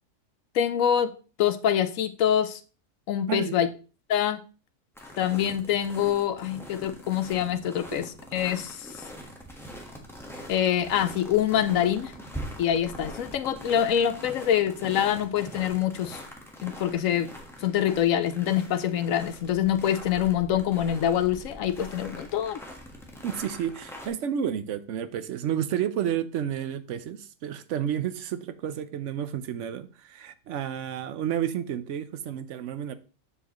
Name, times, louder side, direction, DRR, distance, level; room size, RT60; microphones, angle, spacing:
voice 1, 0.5-1.1 1.4-2.6 3.1-3.7 4.1-4.4 5.2-8.0 8.3-8.9 10.5-12.1 12.6-16.2 16.6-17.3 17.6-22.6, left 10 dB, 85° left, 1.1 m, -25 dB
sound 1, 4.9-24.1, equal, ahead, 1.2 m, -43 dB
voice 2, 23.2-33.0, right 9 dB, 70° right, 0.9 m, -31 dB
7.2 x 7.0 x 3.0 m
omnidirectional pair, 1.4 m